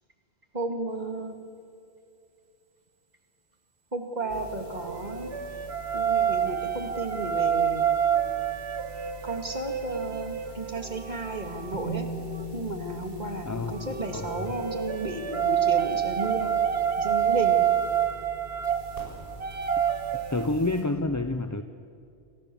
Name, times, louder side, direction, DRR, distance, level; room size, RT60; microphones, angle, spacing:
voice 1, 0.5-1.3 3.9-5.3 5.9-7.9 9.2-12.1 12.5-16.5 17.0-17.7, right 2 dB, 40° right, 4 dB, 2.8 m, -33 dB
sound 1, 4.3-20.8, right 1 dB, 55° right, 6.9 m, -46 dB
sound 2, 4.3-12.5 13.7-20.5, right 9 dB, 70° right, 1.4 m, -28 dB
Bass guitar, 11.7-15.7 16.8-16.9, left 1 dB, 5° right, 4.9 m, -40 dB
voice 2, 13.5-14.5 20.3-21.6, left 2 dB, 20° left, 8 dB, 0.7 m, -29 dB
29.0 x 24.5 x 7.3 m, 2.4 s
omnidirectional pair, 1.2 m